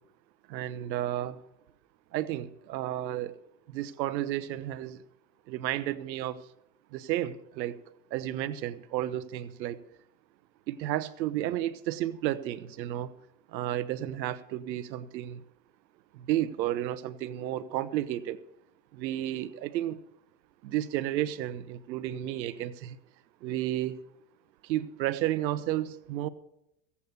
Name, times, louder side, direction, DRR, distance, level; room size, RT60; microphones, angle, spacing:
voice 1, 0.5-1.4 2.1-3.4 3.7-5.0 5.5-6.4 6.9-7.8 8.1-9.8 10.7-13.1 13.5-15.4 16.2-18.4 18.9-20.0 20.6-23.0 23.4-24.0 24.7-26.3, right 13 dB, 90° right, 1.0 m, -32 dB
16.0 x 8.4 x 6.6 m
supercardioid pair, 125°, 50 cm